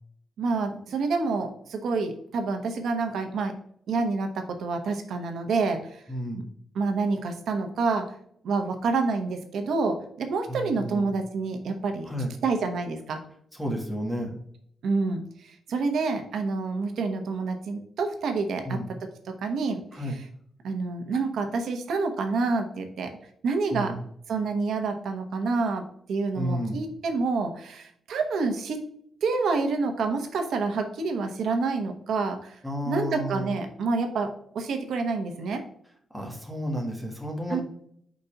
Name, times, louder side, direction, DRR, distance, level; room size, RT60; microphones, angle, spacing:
voice 1, 0.4-3.5 3.9-6.0 6.7-8.1 8.4-12.1 12.4-13.2 14.8-18.8 19.3-20.0 20.6-23.2 23.4-24.0 24.3-28.8 29.2-32.6 32.9-35.6 37.5-37.6, right 4 dB, 80° right, 5 dB, 1.0 m, -28 dB
voice 2, 6.1-6.4 10.5-11.1 12.1-12.3 13.5-14.4 18.6-18.9 19.9-20.2 23.7-24.0 26.4-26.8 32.6-33.6 36.1-37.6, equal, 5° left, 0 dB, 1.6 m, -31 dB
5.2 x 4.0 x 5.8 m, 0.67 s
wide cardioid pair, 125°, 0 cm